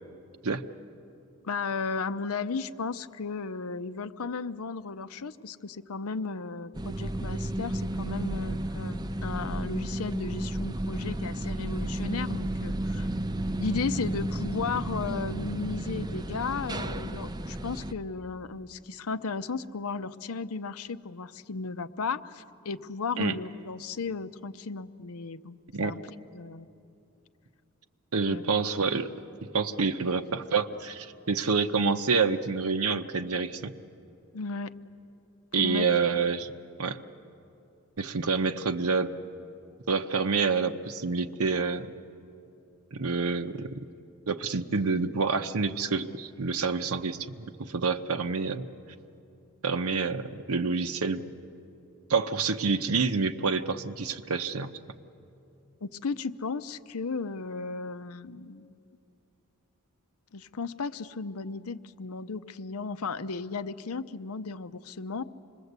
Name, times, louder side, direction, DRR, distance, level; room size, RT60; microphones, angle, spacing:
voice 1, 1.4-13.1 13.6-25.6 25.8-26.0 26.3-26.7 28.2-28.5 34.3-34.7 35.6-35.9 55.8-58.7 60.3-65.2, left 4 dB, 85° left, 11 dB, 0.7 m, -35 dB
sound 1, 6.7-17.9, right 1 dB, 20° right, 0.5 m, -32 dB
voice 2, 28.1-29.1 29.5-33.7 35.5-36.5 36.8-37.0 38.0-39.1 39.9-41.9 42.9-43.8 44.3-48.7 49.6-51.2 52.1-54.7, right 4 dB, 85° right, 8 dB, 0.8 m, -27 dB
26.5 x 21.0 x 8.1 m, 2.7 s
head